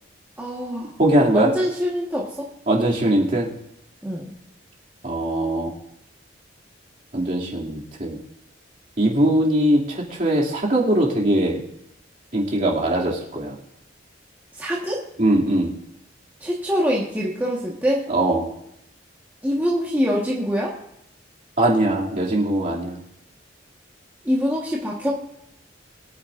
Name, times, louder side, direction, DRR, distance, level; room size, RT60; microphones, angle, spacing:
voice 1, 0.4-0.9 1.3-2.5 4.0-4.3 14.6-15.0 16.4-18.1 19.4-20.7 24.2-25.1, equal, 10° right, -4 dB, 1.4 m, -24 dB
voice 2, 1.0-1.5 2.7-3.5 5.0-5.7 7.1-8.2 9.0-11.6 12.3-13.6 15.2-15.7 18.1-18.5 21.6-23.0, right 1 dB, 45° right, -3 dB, 2.6 m, -21 dB
23.0 x 9.6 x 2.5 m, 0.80 s
head